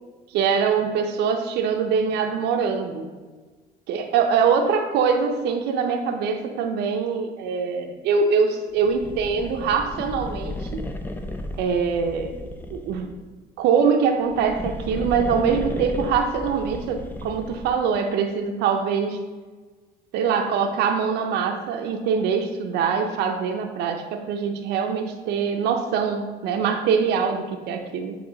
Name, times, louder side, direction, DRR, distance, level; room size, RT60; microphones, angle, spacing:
voice 1, 0.3-3.1 3.9-10.8 11.6-12.4 12.7-13.1 13.6-19.2 20.1-28.2, right 6 dB, 80° right, 4 dB, 0.6 m, -23 dB
sound 1, 8.8-13.2 14.1-17.8, left 1 dB, 10° left, 0.5 m, -34 dB
7.8 x 3.1 x 3.8 m, 1.4 s
cardioid pair, 110°, 17 cm